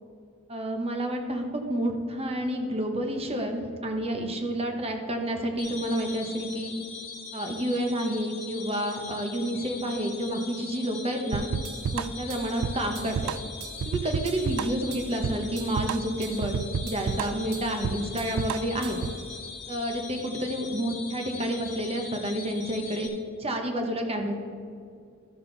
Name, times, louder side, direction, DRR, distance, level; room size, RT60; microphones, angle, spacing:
voice 1, 0.5-6.7 7.3-11.5 11.9-13.1 13.9-16.5 16.8-19.0 19.7-23.1 23.4-24.4, right 1 dB, 30° right, 4 dB, 1.0 m, -29 dB
sound 1, 5.6-23.1, left 5 dB, 25° left, 2.0 m, -41 dB
sound 2, 11.3-19.2, right 6 dB, 85° right, 0.3 m, -31 dB
13.0 x 6.5 x 4.0 m, 2.4 s
head